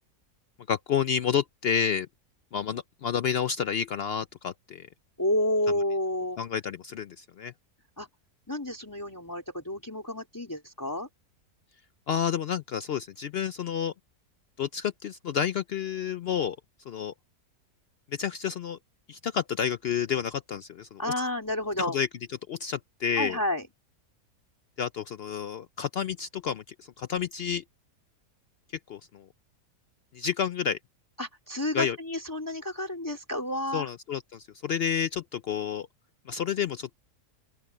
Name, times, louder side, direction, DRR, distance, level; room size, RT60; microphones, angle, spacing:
voice 1, 0.7-2.1 2.5-4.9 6.4-7.5 12.1-13.9 14.6-16.6 16.9-17.1 18.1-18.8 19.1-21.1 21.8-22.1 22.5-23.4 24.8-27.6 28.9-29.3 30.1-30.8 31.7-32.0 33.7-35.9 36.3-37.0, left 8 dB, 85° left, 0.5 m, -30 dB
voice 2, 5.2-6.4 8.0-8.1 8.5-11.1 21.0-22.0 23.2-23.6 31.2-33.9, left 1 dB, 10° left, 3.4 m, -30 dB
open air
omnidirectional pair, 1.7 m